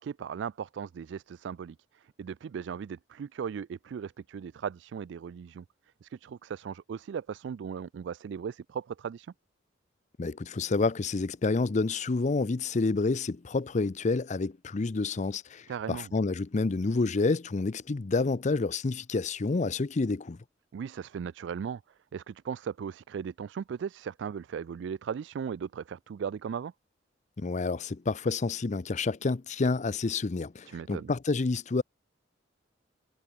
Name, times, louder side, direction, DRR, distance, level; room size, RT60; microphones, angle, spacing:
voice 1, 0.0-5.6 6.0-9.3 15.7-16.1 20.7-21.8 22.1-26.7 30.7-31.1, right 7 dB, 70° right, 0.3 m, -37 dB
voice 2, 10.2-20.4 27.4-31.8, left 3 dB, 40° left, 0.5 m, -29 dB
head